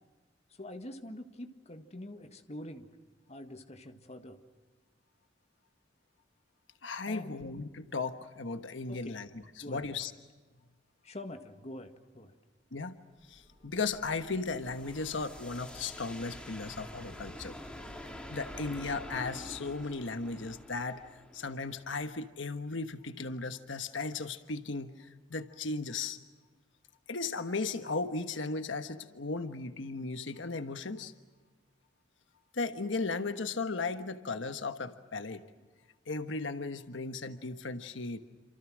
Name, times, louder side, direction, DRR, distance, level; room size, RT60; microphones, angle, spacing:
voice 1, 0.6-2.9 3.3-4.4 7.1-7.4 8.9-9.2 9.6-10.0 11.0-12.4, left 1 dB, 35° left, 7 dB, 1.8 m, -45 dB
voice 2, 6.8-10.1 12.7-13.0 13.3-17.6 18.3-26.2 27.1-31.1 32.5-35.4 36.1-38.2, left 3 dB, 85° left, 9 dB, 1.3 m, -36 dB
sound 1, 13.2-22.1, left 1 dB, 5° left, 3.2 m, -47 dB
28.5 x 27.0 x 6.3 m, 1.3 s
head